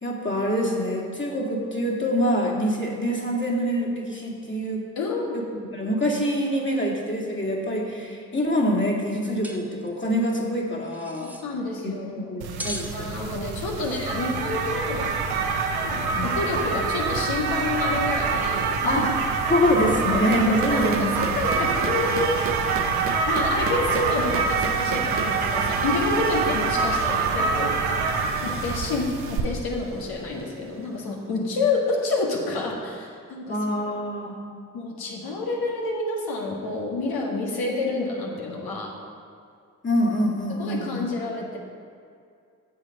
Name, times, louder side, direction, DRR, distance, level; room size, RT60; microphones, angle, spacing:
voice 1, 0.0-4.8 5.3-11.3 11.8-13.2 16.1-16.3 18.8-19.0 19.5-21.2 33.5-34.4 39.8-41.0, equal, 30° left, -2 dB, 2.3 m, -25 dB
voice 2, 5.0-5.4 11.2-12.4 12.9-15.1 15.8-19.0 20.5-22.5 23.3-28.1 28.3-33.6 34.7-38.9 40.5-41.6, left 3 dB, 70° left, -1 dB, 1.7 m, -29 dB
sound 1, 9.4-9.6 9.9-10.0 10.8-11.5 12.6-12.9 13.8-14.1, equal, 5° right, 1.1 m, -37 dB
sound 2, 12.4-29.4, right 4 dB, 70° right, 0.9 m, -26 dB
sound 3, 20.3-30.9, right 8 dB, 35° right, 0.5 m, -36 dB
7.7 x 7.5 x 5.3 m, 2.3 s
hypercardioid pair, 45°, 38 cm